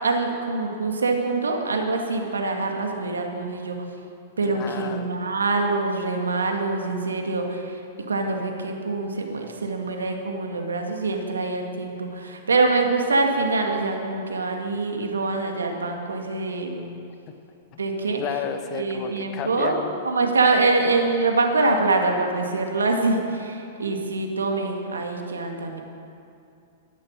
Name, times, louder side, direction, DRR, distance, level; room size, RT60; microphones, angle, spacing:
voice 1, 0.0-3.8 4.4-7.8 8.1-16.9 17.8-18.2 18.7-19.8 20.0-25.8, right 3 dB, 80° right, 3 dB, 2.0 m, -24 dB
voice 2, 4.4-5.1 17.7-17.8 18.2-20.0, left 8 dB, 40° left, 7 dB, 1.3 m, -32 dB
13.5 x 11.0 x 7.5 m, 2.6 s
hypercardioid pair, 105°, 0 cm